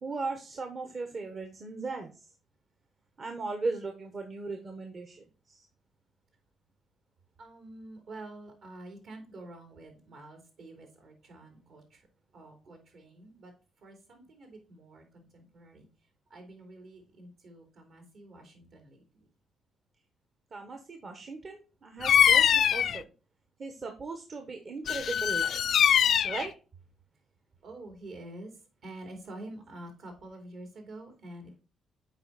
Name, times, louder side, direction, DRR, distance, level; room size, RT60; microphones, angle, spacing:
voice 1, 0.0-2.1 3.2-5.6 20.5-23.1 23.6-25.6 26.2-26.5, right 3 dB, 45° right, 5 dB, 1.2 m, -37 dB
voice 2, 7.4-12.0 12.3-13.5 13.8-15.9 16.3-19.0 27.6-28.5 28.8-31.6, right 2 dB, 65° right, 3 dB, 3.2 m, -47 dB
Bird vocalization bird call bird song, 22.0-23.0 24.9-26.5, left 9 dB, 65° left, 0.3 m, -23 dB
8.0 x 4.9 x 4.1 m, 0.34 s
cardioid pair, 90°, 0 cm